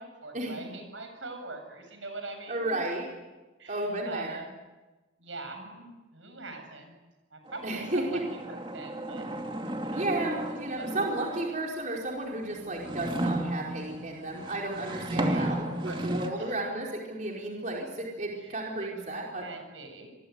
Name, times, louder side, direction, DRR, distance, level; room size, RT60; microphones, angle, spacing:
voice 1, 0.0-2.8 3.6-4.5 5.2-7.0 7.3-8.2 8.5-10.2 10.5-10.9 11.1-11.3 15.1-15.5 15.8-16.0 16.3-16.8 18.4-20.1, right 3 dB, 80° right, 6 dB, 8.0 m, -43 dB
voice 2, 2.5-3.1 3.7-4.4 7.6-8.2 9.9-19.5, right 1 dB, 40° right, -1 dB, 4.6 m, -33 dB
sound 1, 7.5-11.8 12.4-16.3, right 1 dB, 25° right, 2.6 m, -34 dB
26.5 x 23.0 x 9.6 m, 1.2 s
head